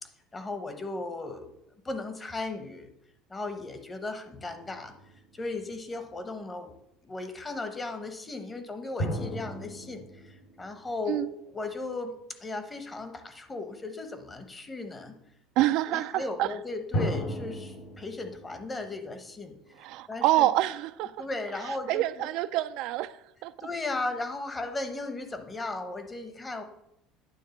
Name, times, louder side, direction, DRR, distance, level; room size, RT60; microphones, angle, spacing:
voice 1, 0.0-1.4 1.8-2.9 3.3-4.9 5.3-6.7 7.0-12.1 12.4-15.2 15.9-20.5 21.2-22.3 23.6-26.6, left 2 dB, 20° left, 7 dB, 1.0 m, -36 dB
sound 1, 4.4-6.0 9.0-11.7 16.9-19.9, equal, 60° left, 1.8 m, -36 dB
voice 2, 15.6-16.5 19.8-21.1 21.7-23.5, right 15 dB, 65° right, 13 dB, 0.3 m, -27 dB
9.2 x 3.7 x 7.0 m, 0.81 s
cardioid pair, 130°, 0 cm